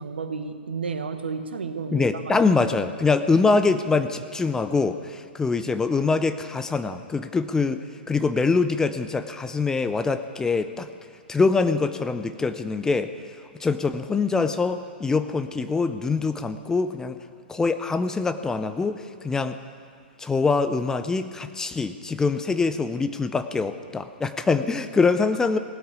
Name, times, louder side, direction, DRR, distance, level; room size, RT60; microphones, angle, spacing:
voice 1, 0.0-2.4 2.7-2.9, right 5 dB, 70° right, 8 dB, 1.2 m, -32 dB
voice 2, 1.9-10.9 11.3-13.1 13.6-17.2 17.5-18.9 19.2-19.6 20.2-25.6, left 4 dB, 10° left, 10 dB, 0.5 m, -24 dB
17.0 x 8.6 x 9.5 m, 2.2 s
figure-of-eight pair, 110°, 6 cm